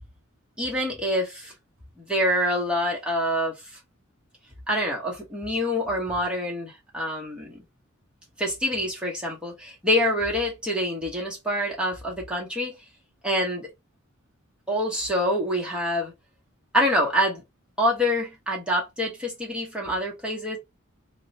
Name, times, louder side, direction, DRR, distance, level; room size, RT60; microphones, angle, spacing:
voice 1, 0.6-1.5 2.0-3.5 4.7-7.6 8.4-12.7 13.2-13.7 14.7-16.1 16.7-17.4 17.8-20.6, equal, 5° right, 0.9 m, -26 dB
2.3 x 2.2 x 3.9 m
head